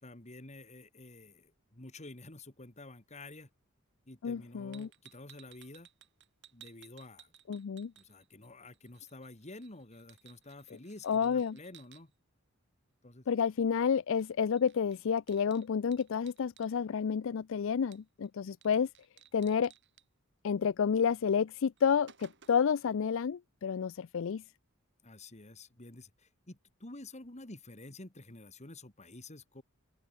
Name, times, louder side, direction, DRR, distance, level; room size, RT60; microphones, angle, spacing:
voice 1, 0.0-3.5 4.1-5.9 6.5-7.3 8.0-12.1 13.0-13.3 25.0-29.6, left 2 dB, 35° left, 2.8 m, -50 dB
voice 2, 4.2-4.9 7.5-7.9 11.0-11.6 13.3-18.9 19.3-19.7 20.4-24.4, left 7 dB, 65° left, 0.4 m, -30 dB
sound 1, 4.7-8.5 8.7-12.0 14.2-14.3 14.6-16.7 17.9-18.3 18.6-18.7 18.9-20.0 21.1-21.3 21.6-22.8, right 9 dB, 60° right, 4.1 m, -59 dB
open air
head